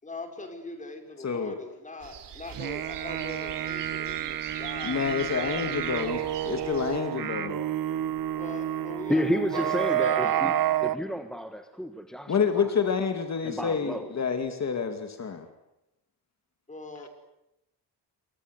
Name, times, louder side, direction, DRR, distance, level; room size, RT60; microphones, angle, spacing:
voice 1, 0.0-5.0 5.9-6.1 8.4-10.4 16.7-17.1, left 2 dB, 20° left, 4.9 m, -41 dB
voice 2, 1.2-1.6 4.8-7.6 12.3-15.5, left 6 dB, 40° left, 2.4 m, -28 dB
sound 1, 2.0-7.0, right 9 dB, 85° right, 3.2 m, -42 dB
sound 2, 2.5-11.0, right 11 dB, 55° right, 1.1 m, -29 dB
voice 3, 9.1-10.5 10.8-12.7 13.4-14.1, equal, ahead, 1.3 m, -31 dB
29.0 x 24.0 x 8.2 m
wide cardioid pair, 175°, 41 cm